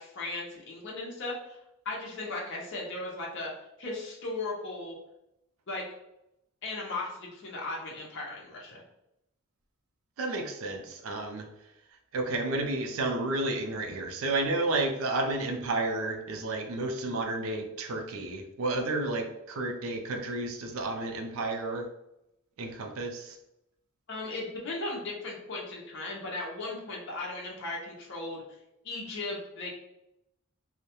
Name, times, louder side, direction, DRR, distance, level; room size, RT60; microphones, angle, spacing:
voice 1, 0.0-1.6 1.8-3.5 3.8-5.0 5.7-5.9 6.6-8.8 24.1-28.4 28.8-29.7, left 2 dB, 60° left, -3 dB, 0.6 m, -37 dB
voice 2, 10.2-11.5 12.1-21.9 22.6-23.4, right 2 dB, 80° right, 4 dB, 0.4 m, -31 dB
2.2 x 2.0 x 2.8 m, 0.86 s
head